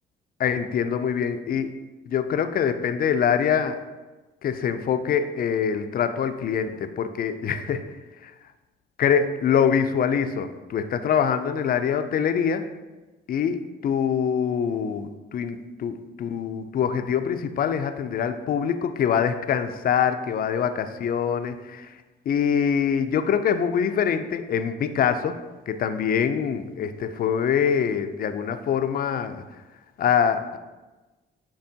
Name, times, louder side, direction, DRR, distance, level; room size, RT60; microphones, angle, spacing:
voice 1, 0.4-1.7 2.1-3.8 4.4-7.8 8.2-8.3 9.0-12.6 13.3-13.6 13.8-21.9 22.3-25.4 25.7-29.4 30.0-30.6, left 7 dB, 50° left, 9 dB, 0.4 m, -24 dB
6.7 x 2.9 x 2.7 m, 1.2 s
cardioid pair, 90°, 20 cm